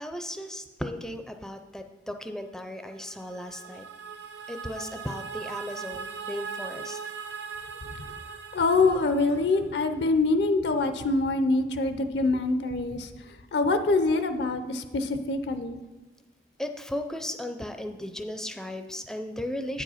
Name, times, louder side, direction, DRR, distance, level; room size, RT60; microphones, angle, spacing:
voice 1, 0.0-3.8 4.5-7.0 16.6-19.8, left 1 dB, 5° left, 7 dB, 0.4 m, -36 dB
sound 1, 2.8-9.9, right 6 dB, 70° right, 0.7 m, -40 dB
voice 2, 8.5-13.1 13.5-15.8, left 3 dB, 65° left, 9 dB, 0.5 m, -25 dB
8.5 x 4.9 x 5.6 m, 1.2 s
head